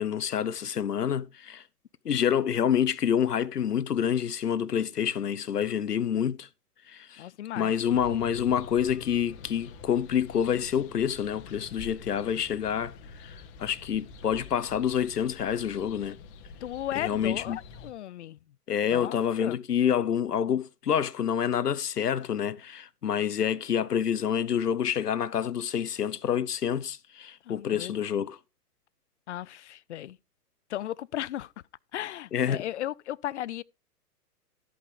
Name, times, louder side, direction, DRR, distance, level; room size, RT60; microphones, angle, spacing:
voice 1, 0.0-1.6 2.0-6.5 6.9-7.3 7.6-12.9 13.3-16.2 17.0-17.6 18.7-28.4 32.3-32.6, left 8 dB, 75° left, 1.0 m, -27 dB
voice 2, 7.2-7.7 16.6-18.4 18.9-19.6 27.4-27.9 29.3-30.2 30.7-31.5 31.9-33.6, left 12 dB, 50° left, 0.5 m, -35 dB
sound 1, 7.9-17.9, left 5 dB, 35° left, 1.4 m, -46 dB
13.0 x 8.6 x 3.3 m
figure-of-eight pair, 120°, 47 cm